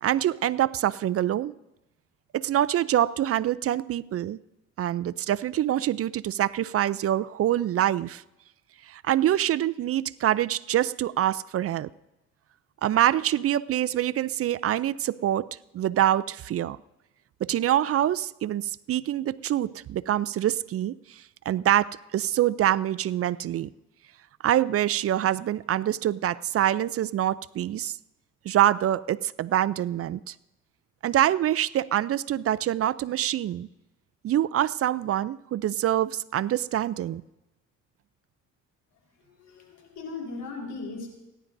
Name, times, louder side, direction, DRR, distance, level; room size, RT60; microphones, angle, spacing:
voice 1, 0.0-1.5 2.3-4.4 4.8-8.2 8.9-11.9 12.8-15.5 15.7-16.8 17.4-20.9 21.5-23.7 24.4-28.0 28.5-30.3 31.0-33.7 34.2-37.2, right 12 dB, 50° right, 18 dB, 0.4 m, -25 dB
voice 2, 38.9-41.1, left 3 dB, 80° left, 0 dB, 4.3 m, -38 dB
29.0 x 11.0 x 2.6 m, 0.97 s
cardioid pair, 90°, 30 cm